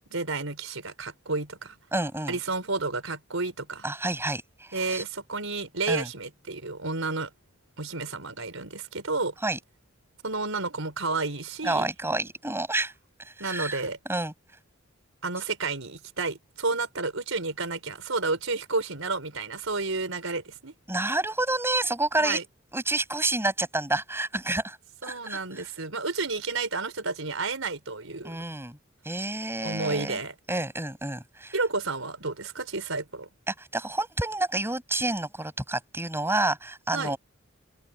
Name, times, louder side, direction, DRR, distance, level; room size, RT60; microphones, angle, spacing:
voice 1, 0.1-1.8 2.3-3.8 4.7-7.3 7.8-9.3 10.2-11.9 13.4-14.0 15.2-20.7 22.2-22.4 25.0-28.4 29.6-30.3 31.5-33.3 36.9-37.1, right 3 dB, 85° right, 4.6 m, -31 dB
voice 2, 1.9-2.4 3.8-5.0 5.9-6.1 9.4-9.6 11.6-12.9 13.2-13.8 14.1-14.3 20.9-22.4 22.7-24.8 25.0-25.6 28.2-28.8 29.0-30.2 30.5-31.6 33.5-37.2, right 2 dB, 10° right, 7.6 m, -29 dB
head